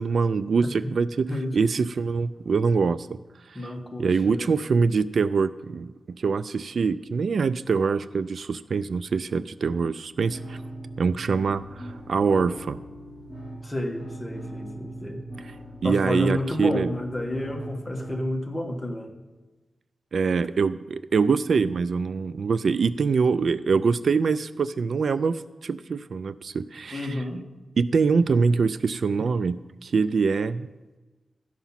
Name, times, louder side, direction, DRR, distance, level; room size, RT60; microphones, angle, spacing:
voice 1, 0.0-1.3 1.5-3.2 3.5-3.6 4.0-10.6 11.0-12.8 15.8-16.9 20.1-27.2 27.8-30.7, right 5 dB, 70° right, 15 dB, 0.3 m, -24 dB
voice 2, 0.6-0.9 1.3-1.6 3.5-4.5 13.6-15.2 15.8-19.1 26.9-27.4, left 1 dB, 20° left, 2 dB, 1.4 m, -30 dB
sound 1, 10.3-18.3, right 1 dB, 10° right, 3.3 m, -40 dB
13.5 x 6.0 x 5.7 m, 1.2 s
wide cardioid pair, 105°, 0 cm